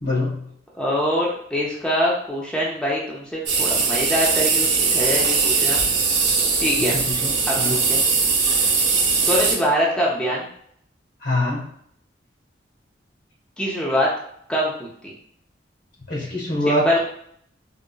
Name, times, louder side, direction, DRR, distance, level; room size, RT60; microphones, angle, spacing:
voice 1, 0.0-0.5 6.8-7.3 7.6-7.8 11.2-11.6 16.1-17.0, left 1 dB, 85° left, -5 dB, 1.5 m, -24 dB
voice 2, 0.7-5.9 6.6-6.9 7.5-8.0 9.2-10.5 13.6-14.1 14.5-15.1 16.7-17.0, equal, 5° left, -5 dB, 0.5 m, -24 dB
sound 1, 3.5-9.5, right 4 dB, 80° right, 0.6 m, -20 dB
3.7 x 2.0 x 2.2 m, 0.66 s
head